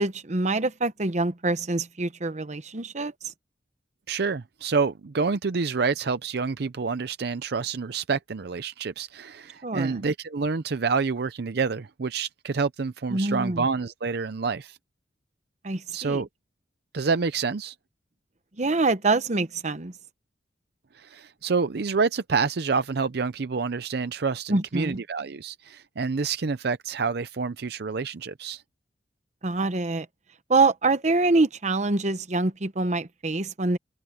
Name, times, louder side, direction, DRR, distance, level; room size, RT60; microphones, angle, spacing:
voice 1, 0.0-3.3 9.6-10.0 13.1-13.6 15.6-16.2 18.6-19.9 24.5-25.0 29.4-30.1 30.5-33.8, right 3 dB, 40° right, 0.9 m, -25 dB
voice 2, 4.1-14.8 15.9-16.3 16.9-17.8 20.9-28.6, right 4 dB, 65° right, 0.6 m, -28 dB
open air
head